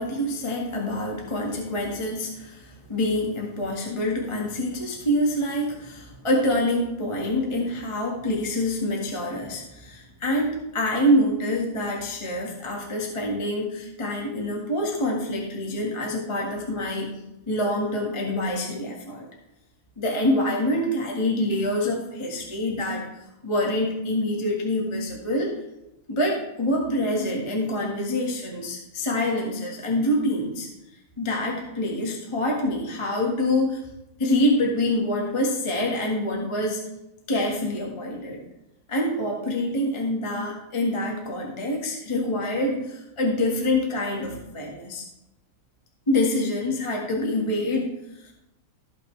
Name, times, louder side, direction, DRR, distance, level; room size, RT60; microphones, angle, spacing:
voice 1, 0.0-17.1 17.5-19.2 20.0-25.6 26.1-30.7 31.2-33.8 34.2-36.8 37.3-38.4 38.9-45.0 46.1-48.2, left 1 dB, 20° left, -1 dB, 0.7 m, -26 dB
14.5 x 5.8 x 3.2 m, 0.90 s
omnidirectional pair, 3.4 m